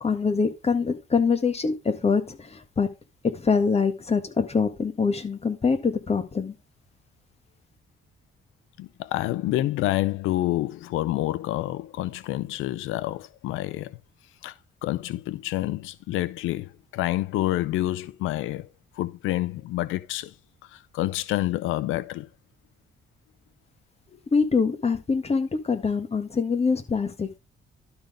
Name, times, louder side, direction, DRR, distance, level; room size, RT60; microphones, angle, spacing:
voice 1, 0.0-2.9 3.3-6.5 24.3-27.4, left 5 dB, 30° left, 1.7 m, -24 dB
voice 2, 8.8-14.0 14.4-14.5 14.8-18.7 19.0-20.3 20.7-22.3, left 15 dB, 90° left, 0.5 m, -28 dB
12.0 x 4.1 x 5.1 m
cardioid pair, 90°, 20 cm